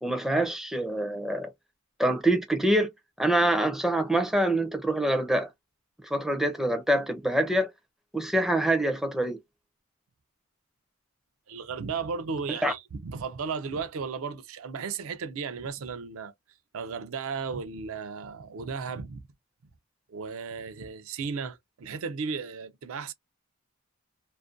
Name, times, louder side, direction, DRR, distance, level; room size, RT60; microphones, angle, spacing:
voice 1, 0.0-1.5 2.0-2.9 3.2-5.5 6.1-7.7 8.1-9.4 12.6-12.7, right 1 dB, ahead, 0.4 m, -25 dB
voice 2, 11.5-16.3 16.7-19.2 20.1-23.1, right 5 dB, 65° right, 0.4 m, -35 dB
2.4 x 2.1 x 2.5 m
head